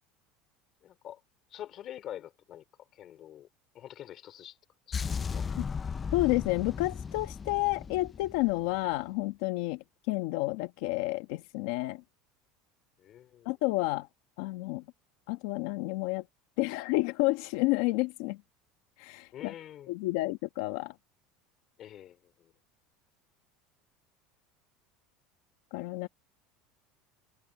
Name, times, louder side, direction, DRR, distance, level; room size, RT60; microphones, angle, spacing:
voice 1, 0.8-1.2 1.5-2.6 2.9-3.5 3.7-4.6 4.9-5.0 5.3-5.5 13.0-13.5 19.3-19.9 21.8-22.5, left 11 dB, 35° left, 2.9 m, -46 dB
sound 1, 4.9-9.0, left 6 dB, 20° left, 0.5 m, -36 dB
voice 2, 6.1-9.8 10.1-12.0 13.4-14.1 14.4-14.8 15.3-16.2 16.6-18.4 19.0-19.5 19.9-20.9 25.7-26.1, left 20 dB, 70° left, 1.3 m, -30 dB
cardioid pair, 160°, 0 cm